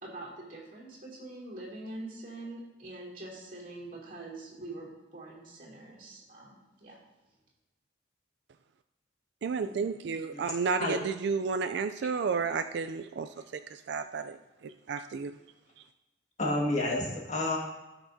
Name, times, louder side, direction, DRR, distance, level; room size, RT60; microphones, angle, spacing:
voice 1, 0.0-7.0, right 2 dB, 45° right, -4 dB, 2.8 m, -44 dB
voice 2, 9.4-13.3 13.7-14.4 14.6-15.3, right 5 dB, 65° right, 9 dB, 0.3 m, -32 dB
voice 3, 16.4-17.6, left 2 dB, 35° left, -3 dB, 1.7 m, -30 dB
16.5 x 5.9 x 2.7 m, 1.1 s
head